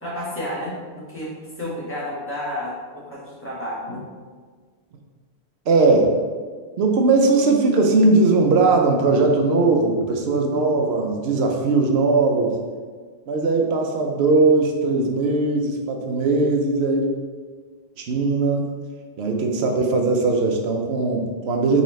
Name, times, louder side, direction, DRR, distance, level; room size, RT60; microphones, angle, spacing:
voice 1, 0.0-1.3 1.6-4.0, left 1 dB, 10° left, -9 dB, 1.5 m, -31 dB
voice 2, 5.7-6.1 6.8-12.5 13.3-17.1 18.0-18.6 19.2-21.8, right 3 dB, 80° right, 2 dB, 0.9 m, -19 dB
4.0 x 3.9 x 3.1 m, 1.5 s
omnidirectional pair, 1.1 m